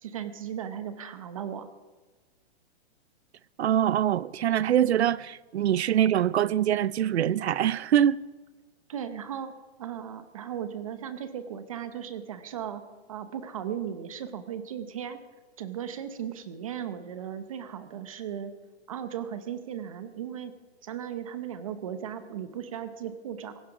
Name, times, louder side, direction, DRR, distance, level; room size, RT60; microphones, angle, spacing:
voice 1, 0.0-1.7 8.9-9.5 9.8-12.8 13.1-15.2 15.6-18.5 18.9-20.5 20.8-23.6, right 9 dB, 35° right, 0.9 m, -36 dB
voice 2, 3.6-8.2, right 10 dB, 90° right, 0.7 m, -24 dB
17.0 x 15.0 x 4.9 m
hypercardioid pair, 180°, 32 cm